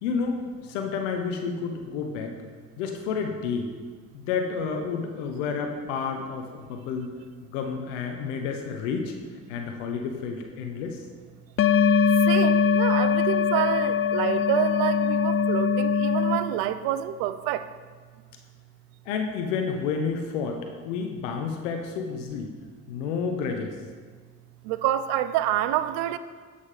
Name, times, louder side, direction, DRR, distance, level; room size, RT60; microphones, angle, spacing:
voice 1, 0.0-2.3 2.8-3.7 4.1-7.1 7.5-9.1 9.5-11.0 19.1-20.6 20.8-22.5 22.9-23.8, left 5 dB, 85° left, 4 dB, 0.8 m, -30 dB
sound 1, 11.6-16.4, left 6 dB, 35° left, 0.5 m, -22 dB
voice 2, 12.3-17.6 24.7-26.2, right 12 dB, 75° right, 13 dB, 0.5 m, -27 dB
8.4 x 5.4 x 5.0 m, 1.5 s
hypercardioid pair, 55°, 36 cm